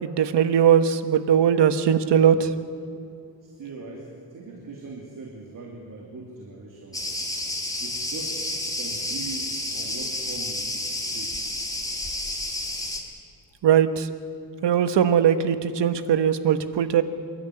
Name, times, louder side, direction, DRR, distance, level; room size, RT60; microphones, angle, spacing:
voice 1, 0.0-2.5 13.6-14.1 14.6-17.0, right 8 dB, 80° right, 11 dB, 1.3 m, -20 dB
voice 2, 3.4-7.0 7.8-11.3, right 3 dB, 50° right, 0 dB, 2.8 m, -41 dB
Cricket, 6.9-13.0, left 1 dB, 10° left, 2.6 m, -30 dB
27.5 x 12.5 x 9.8 m, 2.5 s
wide cardioid pair, 165°, 42 cm